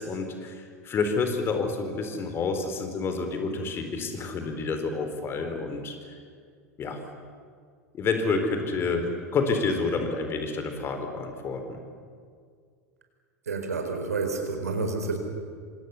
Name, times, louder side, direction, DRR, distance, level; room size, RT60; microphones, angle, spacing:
voice 1, 0.0-6.2 6.8-7.0 7.9-9.1 9.3-11.8, left 4 dB, 25° left, 6 dB, 4.0 m, -29 dB
voice 2, 13.5-15.2, right 3 dB, 70° right, 4 dB, 4.6 m, -29 dB
27.5 x 26.0 x 7.1 m, 2.1 s
figure-of-eight pair, 85°, 9 cm